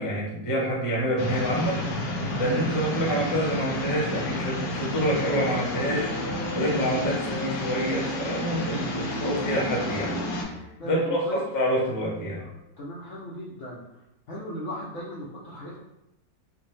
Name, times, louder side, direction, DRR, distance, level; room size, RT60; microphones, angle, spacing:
voice 1, 0.0-1.8 2.3-6.1 6.5-10.1 10.8-12.4, equal, 20° left, -4 dB, 0.6 m, -27 dB
sound 1, 1.2-10.4, left 1 dB, 80° left, 1.4 m, -31 dB
sound 2, 1.9-10.7, right 1 dB, 45° right, 1.4 m, -44 dB
voice 2, 10.8-11.4 12.8-13.8 14.3-15.8, equal, 60° left, -6 dB, 0.8 m, -37 dB
4.8 x 2.2 x 3.1 m, 0.91 s
omnidirectional pair, 1.9 m